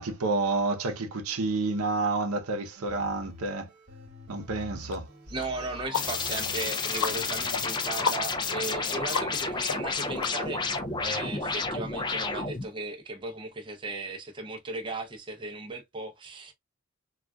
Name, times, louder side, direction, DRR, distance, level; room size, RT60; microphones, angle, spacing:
voice 1, 0.0-3.7 4.3-5.1, right 3 dB, 80° right, 0.7 m, -29 dB
sound 1, 2.8-10.2 10.8-11.3, left 2 dB, 55° right, 1.3 m, -48 dB
sound 2, 4.9-5.0 5.4-10.8, left 6 dB, 80° left, 0.5 m, -35 dB
voice 2, 5.3-10.7 11.0-16.5, right 2 dB, 20° right, 0.6 m, -36 dB
sound 3, 5.9-12.7, left 4 dB, 20° left, 0.3 m, -31 dB
3.7 x 2.4 x 2.2 m
head